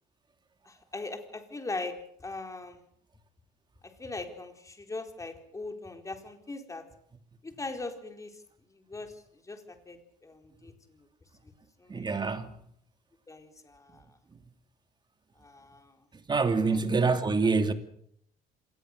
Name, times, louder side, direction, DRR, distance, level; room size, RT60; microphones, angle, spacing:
voice 1, 0.6-2.8 4.0-6.8 7.4-8.3 8.7-11.1 11.4-11.5 11.8-12.3 13.3-14.0 15.4-15.9 16.6-16.8, left 3 dB, 20° left, 4.2 m, -41 dB
voice 2, 11.9-12.5 16.3-17.7, right 4 dB, 25° right, 2.8 m, -26 dB
26.5 x 19.5 x 6.7 m
cardioid pair, 110°, 17 cm